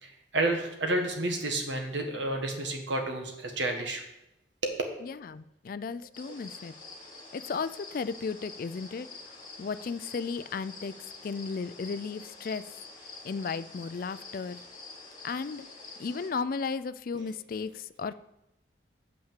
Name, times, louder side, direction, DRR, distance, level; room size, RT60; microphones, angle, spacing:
voice 1, 0.0-4.0 4.6-4.8, right 2 dB, 85° right, 3 dB, 1.6 m, -30 dB
voice 2, 5.0-6.7 7.3-9.1 9.6-10.9 11.2-12.7 13.2-14.6 15.2-15.7 16.0-18.1, left 5 dB, 50° left, 14 dB, 0.4 m, -34 dB
sound 1, 6.1-16.3, left 3 dB, 25° left, 2.8 m, -47 dB
7.2 x 5.8 x 7.4 m, 0.89 s
head